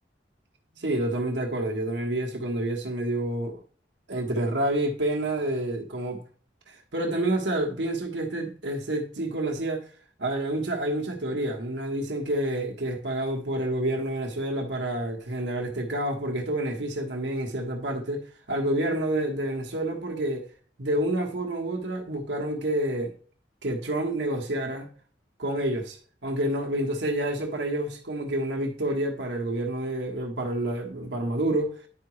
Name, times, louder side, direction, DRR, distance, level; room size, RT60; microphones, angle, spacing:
voice 1, 0.7-3.6 4.1-6.2 6.7-9.9 10.2-18.2 18.5-20.5 20.8-23.1 23.6-24.9 25.4-26.0 26.2-31.8, right 1 dB, 80° right, 1.3 m, -28 dB
10.5 x 4.8 x 3.1 m
head